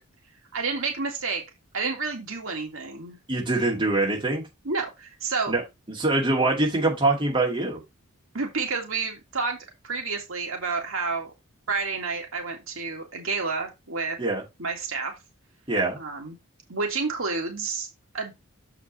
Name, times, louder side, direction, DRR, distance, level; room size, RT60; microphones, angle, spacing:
voice 1, 0.5-1.4 1.7-3.2 4.7-5.5 8.3-9.6 9.8-11.3 11.7-14.2 14.6-15.1 16.0-16.4 16.7-17.9 18.1-18.3, right 4 dB, 65° right, 2 dB, 2.0 m, -29 dB
voice 2, 3.3-4.4 5.5-5.6 5.9-7.8 14.2-14.4 15.7-16.0, right 2 dB, 25° right, -1 dB, 2.2 m, -24 dB
7.2 x 4.9 x 4.2 m, 0.22 s
head